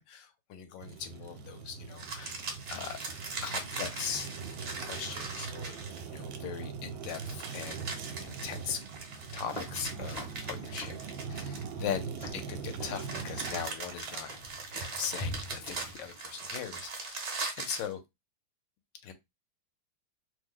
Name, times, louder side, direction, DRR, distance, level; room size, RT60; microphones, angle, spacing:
voice 1, 0.0-2.4 2.7-3.0 3.4-5.8 6.0-7.9 8.2-8.8 9.3-11.0 11.3-14.3 14.7-18.0 19.0-19.1, left 8 dB, 75° left, 1.3 m, -40 dB
Fire, 0.8-16.0, right 6 dB, 80° right, 1.4 m, -42 dB
sound 1, 1.9-6.2 7.0-12.0 12.7-17.9, right 4 dB, 55° right, 0.8 m, -40 dB
sound 2, 9.2-16.2, left 1 dB, 35° left, 0.6 m, -45 dB
3.2 x 2.1 x 3.6 m
omnidirectional pair, 2.1 m